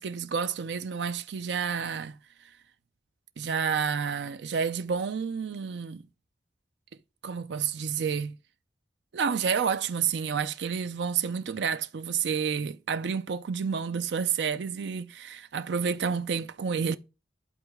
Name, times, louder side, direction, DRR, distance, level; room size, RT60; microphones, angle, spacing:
voice 1, 0.0-2.2 3.4-6.0 7.2-8.4 9.1-17.0, right 6 dB, 85° right, 0.4 m, -30 dB
11.0 x 4.0 x 3.5 m
head